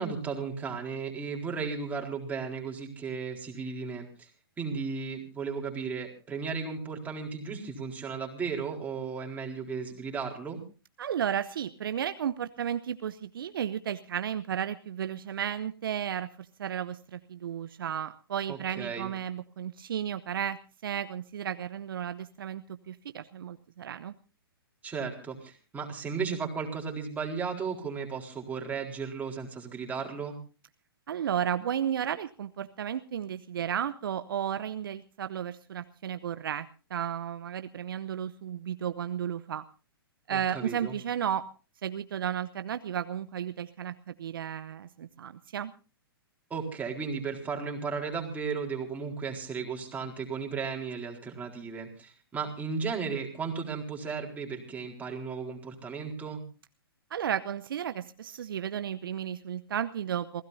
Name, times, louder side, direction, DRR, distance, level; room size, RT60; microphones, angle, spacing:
voice 1, 0.0-4.3 4.6-10.6 18.5-19.1 24.8-30.4 40.3-41.0 46.5-56.4, right 5 dB, 10° right, 0 dB, 4.1 m, -35 dB
voice 2, 11.0-16.3 16.6-24.1 31.1-39.6 40.3-41.5 41.8-45.7 57.1-60.4, right 9 dB, 65° right, 11 dB, 0.8 m, -33 dB
27.5 x 16.5 x 2.7 m, 0.34 s
hypercardioid pair, 120°, 13 cm